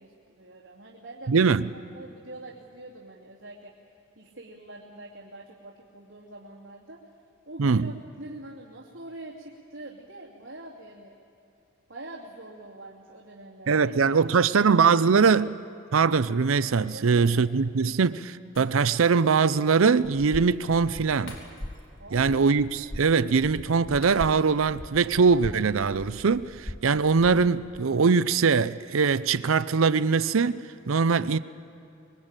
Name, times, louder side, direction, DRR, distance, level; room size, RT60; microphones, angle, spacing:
voice 1, 0.0-3.7 4.2-7.0 7.5-11.1 11.9-14.4 16.9-17.3 22.0-22.4, right 2 dB, 65° right, 2.7 m, -44 dB
voice 2, 1.3-1.7 7.6-7.9 13.7-15.6 15.9-21.4 22.1-31.4, right 5 dB, 85° right, 0.6 m, -22 dB
Shatter, 18.6-19.3 19.6-19.7 21.3-22.0 22.3-22.5 24.0-24.7 25.1-25.2, left 2 dB, 75° left, 4.2 m, -49 dB
sound 1, 20.0-27.8, left 1 dB, 15° left, 0.7 m, -41 dB
25.0 x 22.0 x 8.9 m
head